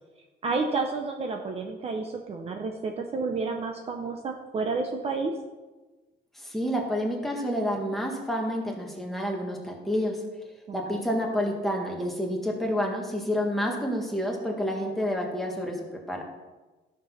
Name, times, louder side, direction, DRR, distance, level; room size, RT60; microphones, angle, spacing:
voice 1, 0.4-5.3 10.7-11.1, right 4 dB, 35° right, 4 dB, 0.8 m, -30 dB
voice 2, 6.3-10.2 10.7-16.2, equal, ahead, -1 dB, 1.6 m, -29 dB
13.5 x 6.2 x 5.7 m, 1.2 s
cardioid pair, 175°, 18 cm